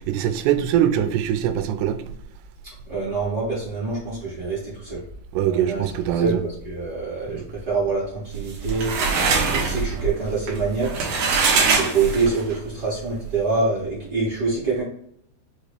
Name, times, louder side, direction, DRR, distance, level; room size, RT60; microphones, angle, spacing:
voice 1, 0.0-2.0 5.3-6.4 7.3-7.4, right 10 dB, 90° right, 2.6 m, -22 dB
voice 2, 2.9-5.0 5.4-5.8 6.1-11.0 11.5-14.8, right 4 dB, 40° right, 1.2 m, -26 dB
sound 1, 8.4-12.5, right 4 dB, 70° right, 2.3 m, -22 dB
6.2 x 2.3 x 3.3 m
omnidirectional pair, 4.6 m